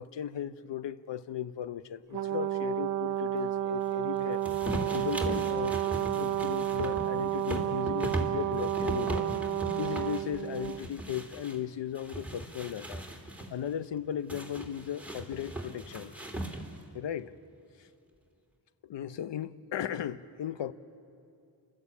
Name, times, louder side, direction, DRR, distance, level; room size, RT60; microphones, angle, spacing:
voice 1, 0.0-5.8 6.1-9.3 9.8-13.0 13.5-16.1 16.9-17.3 17.8-17.9 18.8-20.7, left 9 dB, 75° left, 0.8 m, -36 dB
Brass instrument, 2.1-10.8, right 12 dB, 45° right, 0.5 m, -31 dB
sound 1, 4.4-11.6 11.9-13.5 14.3-16.9, right 1 dB, 5° right, 3.0 m, -38 dB
29.0 x 12.5 x 8.5 m
cardioid pair, 55°, 43 cm